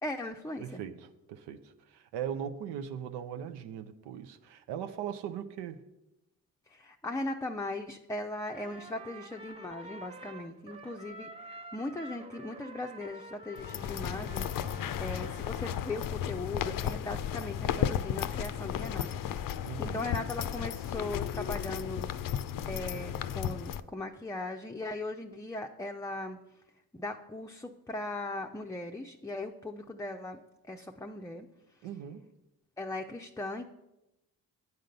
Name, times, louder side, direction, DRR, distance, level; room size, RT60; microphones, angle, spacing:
voice 1, 0.0-0.8 6.7-14.5 15.0-22.1 22.7-26.4 26.9-30.4 30.7-31.5 32.8-33.7, left 2 dB, 10° left, 0.5 m, -38 dB
voice 2, 0.6-5.8 19.6-20.1 31.8-32.3, right 9 dB, 85° right, 0.6 m, -39 dB
Trumpet, 8.5-16.1, right 2 dB, 15° right, 0.9 m, -49 dB
sound 1, 13.6-23.8, left 9 dB, 55° left, 0.5 m, -34 dB
9.2 x 3.8 x 6.6 m
supercardioid pair, 45°, 40 cm